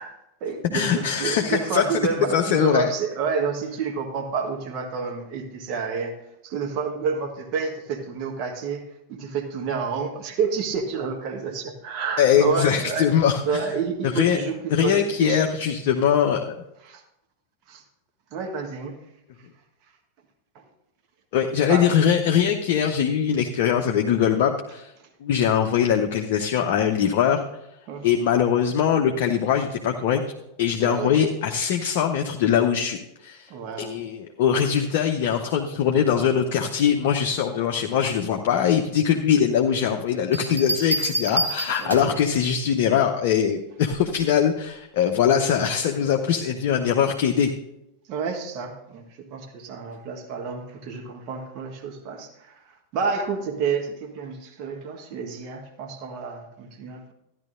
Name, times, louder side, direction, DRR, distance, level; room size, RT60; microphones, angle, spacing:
voice 1, 0.0-6.2 6.4-8.8 9.1-13.1 13.4-15.4 16.8-17.0 17.7-17.8 18.3-19.0 20.5-20.6 21.7-21.9 25.0-25.1 27.9-28.1 30.8-31.1 33.5-34.0 41.8-42.2 48.1-57.1, right 5 dB, 40° right, 5 dB, 1.2 m, -29 dB
voice 2, 0.7-1.8 2.3-2.9 12.2-13.6 14.2-14.4 14.7-16.5 21.3-24.9 25.2-27.4 28.0-30.2 30.6-33.5 33.8-47.5, left 8 dB, 50° left, 2 dB, 0.6 m, -22 dB
Bell, 40.3-42.3 43.9-44.2, right 1 dB, 80° right, 0.9 m, -27 dB
13.5 x 10.5 x 2.5 m, 0.85 s
figure-of-eight pair, 90°, 0 cm